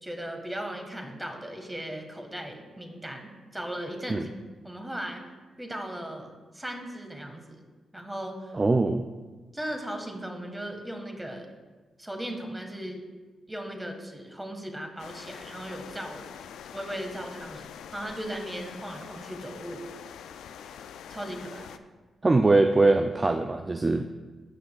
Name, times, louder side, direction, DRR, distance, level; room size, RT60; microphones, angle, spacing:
voice 1, 0.0-4.3 4.6-5.2 5.6-7.6 7.9-8.5 9.5-11.5 12.0-13.0 13.5-16.2 16.7-17.7 17.9-19.8 21.1-21.7, right 1 dB, 15° right, 4 dB, 1.6 m, -37 dB
voice 2, 8.5-9.1 22.2-24.1, right 2 dB, 30° right, 6 dB, 0.4 m, -22 dB
sound 1, 15.0-21.8, left 8 dB, 80° left, 0.3 m, -44 dB
15.0 x 6.0 x 2.4 m, 1.3 s
supercardioid pair, 50°, 0 cm